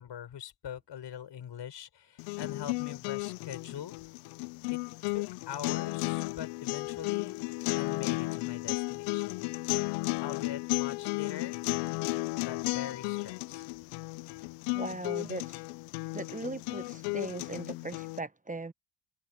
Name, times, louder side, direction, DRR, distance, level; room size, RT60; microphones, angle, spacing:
voice 1, 0.0-4.0 4.7-4.8 5.1-7.4 7.8-9.5 10.2-11.6 12.4-13.7, left 9 dB, 55° left, 5.3 m, -43 dB
sound 1, 2.2-18.2, left 28 dB, 85° left, 0.6 m, -34 dB
voice 2, 14.7-15.6 16.1-18.7, right 2 dB, 15° right, 1.1 m, -39 dB
supercardioid pair, 70°, 50 cm